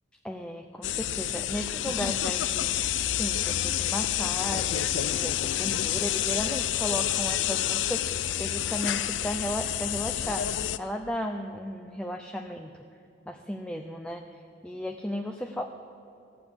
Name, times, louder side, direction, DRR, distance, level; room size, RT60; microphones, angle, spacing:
voice 1, 0.2-2.9 3.1-12.8 13.3-15.6, equal, 5° left, 3 dB, 0.5 m, -35 dB
sound 1, 0.8-10.8, left 11 dB, 70° left, 0.4 m, -28 dB
14.0 x 6.8 x 8.4 m, 2.6 s
head